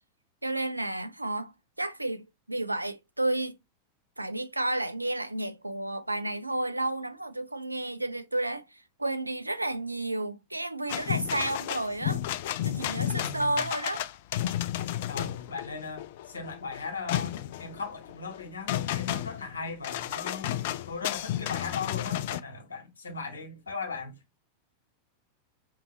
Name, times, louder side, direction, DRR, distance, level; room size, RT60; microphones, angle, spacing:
voice 1, 0.4-1.5 1.8-3.6 4.2-12.2 12.6-14.1, right 2 dB, 85° right, 0.4 m, -31 dB
sound 1, 10.9-22.4, left 12 dB, 55° left, 0.4 m, -32 dB
voice 2, 13.2-13.7 15.1-20.6 20.9-24.2, left 4 dB, 75° left, 1.2 m, -38 dB
5.1 x 2.8 x 2.7 m
figure-of-eight pair, 90°, 0 cm